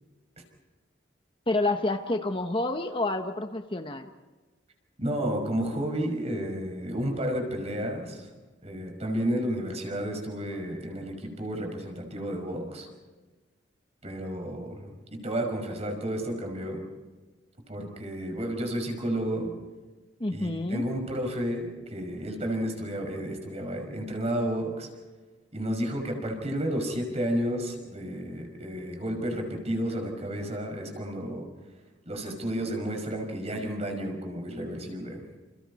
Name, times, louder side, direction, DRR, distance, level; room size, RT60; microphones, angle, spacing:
voice 1, 1.5-4.1 20.2-20.8, left 2 dB, 30° left, 6 dB, 1.1 m, -28 dB
voice 2, 5.0-8.3 8.6-12.9 14.0-16.8 17.7-19.5 20.3-24.9 25.5-31.5 32.1-35.2, equal, 35° right, 3 dB, 5.6 m, -31 dB
29.5 x 28.5 x 4.2 m, 1.3 s
head